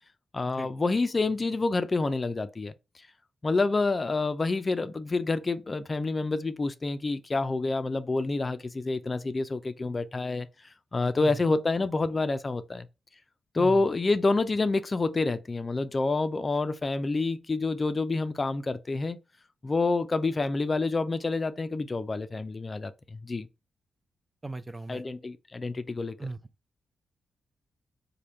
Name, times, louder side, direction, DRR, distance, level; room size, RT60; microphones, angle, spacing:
voice 1, 0.3-2.7 3.4-10.5 10.9-12.9 13.5-19.2 19.6-23.5 24.9-26.2, left 3 dB, 40° left, 0.4 m, -28 dB
voice 2, 13.6-13.9 24.4-25.0 26.2-26.4, right 3 dB, 25° right, 0.5 m, -37 dB
3.4 x 2.2 x 4.0 m
supercardioid pair, 40°, 0 cm